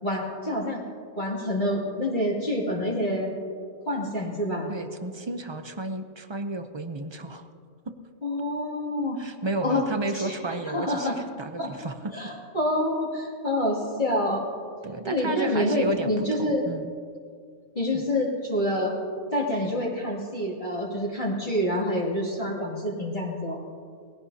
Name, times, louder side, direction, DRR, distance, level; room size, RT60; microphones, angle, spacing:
voice 1, 0.0-0.9 1.2-3.3 3.9-4.7 8.2-9.2 9.6-9.8 10.1-10.4 10.7-11.1 11.6-11.7 12.1-14.4 15.0-16.7 17.7-18.9 19.3-23.6, left 1 dB, 35° left, -5 dB, 2.6 m, -27 dB
voice 2, 4.7-7.4 7.9-8.0 9.2-11.1 11.4-12.1 14.8-16.1 16.4-16.9 17.9-18.0, right 2 dB, 35° right, 8 dB, 0.4 m, -32 dB
21.0 x 16.0 x 2.8 m, 2.2 s
omnidirectional pair, 1.4 m